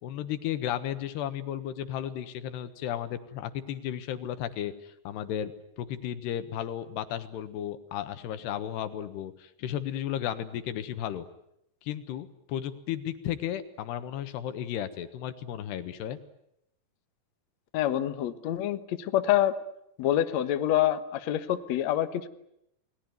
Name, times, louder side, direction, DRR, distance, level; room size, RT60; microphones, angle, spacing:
voice 1, 0.0-11.3 11.8-16.2, left 10 dB, 80° left, 11 dB, 3.5 m, -34 dB
voice 2, 17.7-19.5 20.0-22.3, left 12 dB, 65° left, 10 dB, 1.8 m, -26 dB
28.5 x 20.0 x 9.5 m, 0.78 s
omnidirectional pair, 4.8 m